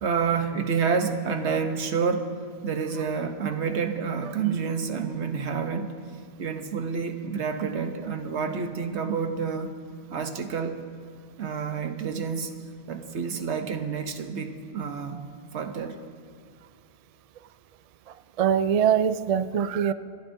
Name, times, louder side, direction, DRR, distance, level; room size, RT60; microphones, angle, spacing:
voice 1, 0.0-2.4 2.6-6.0 6.4-9.7 10.1-10.8 11.4-12.6 12.9-16.0, right 6 dB, 85° right, 7 dB, 1.2 m, -29 dB
voice 2, 18.4-19.9, right 8 dB, 55° right, 13 dB, 0.4 m, -23 dB
28.0 x 13.0 x 2.7 m, 2.3 s
omnidirectional pair, 1.1 m